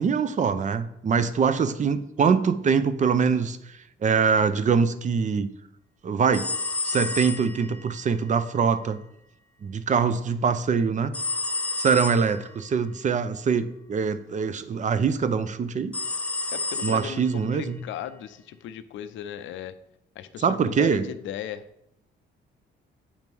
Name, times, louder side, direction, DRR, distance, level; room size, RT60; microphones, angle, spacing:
voice 1, 0.0-5.5 6.0-6.5 6.8-9.0 9.6-11.2 11.8-15.9 16.8-17.8 20.4-21.1, right 6 dB, 40° right, 12 dB, 0.5 m, -23 dB
sound 1, 6.3-7.9 11.1-12.4 15.9-17.3, left 3 dB, 5° left, 0.7 m, -30 dB
voice 2, 16.5-19.7 20.2-21.6, left 10 dB, 75° left, 11 dB, 0.5 m, -37 dB
8.5 x 3.0 x 5.3 m, 0.79 s
cardioid pair, 90°, 20 cm